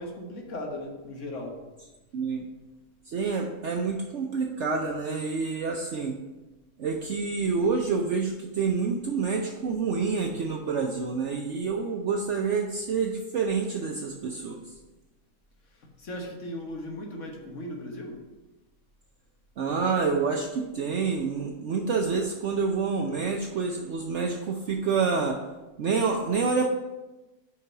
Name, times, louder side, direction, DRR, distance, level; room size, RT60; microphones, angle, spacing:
voice 1, 0.0-1.6 16.0-18.2, left 1 dB, 55° left, 1 dB, 1.6 m, -37 dB
voice 2, 3.1-6.2 6.8-14.6 19.6-25.4 25.8-26.7, right 5 dB, 60° right, 2 dB, 0.9 m, -28 dB
5.7 x 4.7 x 5.4 m, 1.1 s
omnidirectional pair, 1.6 m